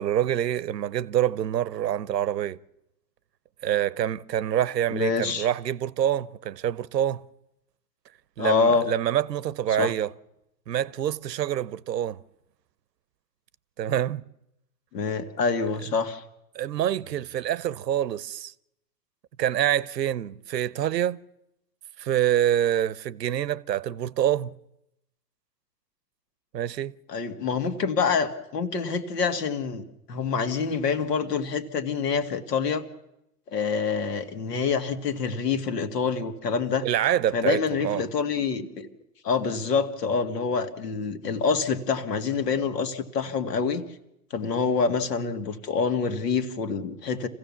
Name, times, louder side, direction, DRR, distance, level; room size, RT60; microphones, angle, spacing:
voice 1, 0.0-2.6 3.6-7.2 8.4-10.1 10.7-12.2 13.8-14.2 16.5-18.5 19.4-21.2 22.0-24.5 26.5-27.0 36.8-38.1, right 11 dB, 85° right, 0.8 m, -26 dB
voice 2, 4.9-5.5 8.4-8.9 9.8-9.9 14.9-16.2 27.1-32.8 33.5-36.9 37.3-38.9 39.2-43.9 44.3-47.3, left 5 dB, 75° left, 2.2 m, -26 dB
26.0 x 16.0 x 7.1 m
hypercardioid pair, 135°, 49 cm